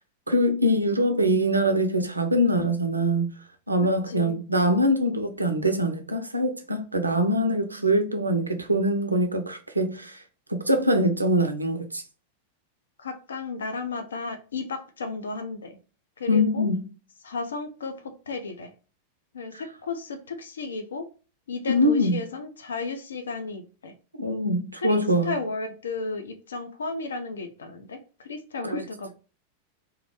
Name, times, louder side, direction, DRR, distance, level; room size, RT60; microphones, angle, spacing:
voice 1, 0.3-3.3 3.7-10.2 10.5-12.0 16.3-16.9 21.7-22.2 24.2-25.3, equal, 80° right, 0.3 m, -23 dB
voice 2, 4.1-4.4 7.7-7.9 13.0-15.8 16.2-16.7 17.2-18.7 19.3-21.1 21.5-23.9 24.7-29.1, left 3 dB, 70° left, 0.3 m, -34 dB
2.3 x 2.0 x 2.8 m
figure-of-eight pair, 90°, 0 cm